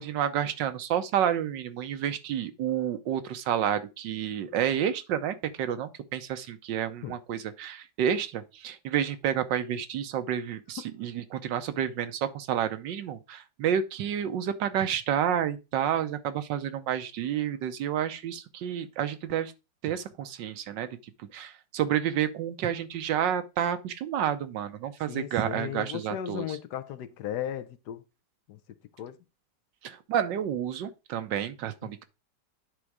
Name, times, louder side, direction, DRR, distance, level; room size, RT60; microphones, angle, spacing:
voice 1, 0.0-19.5 19.8-26.6 29.8-32.0, right 9 dB, 80° right, 1.5 m, -30 dB
voice 2, 25.1-28.0 28.5-28.6 29.0-29.2, left 10 dB, 70° left, 1.2 m, -36 dB
9.9 x 4.0 x 4.7 m
omnidirectional pair, 1.9 m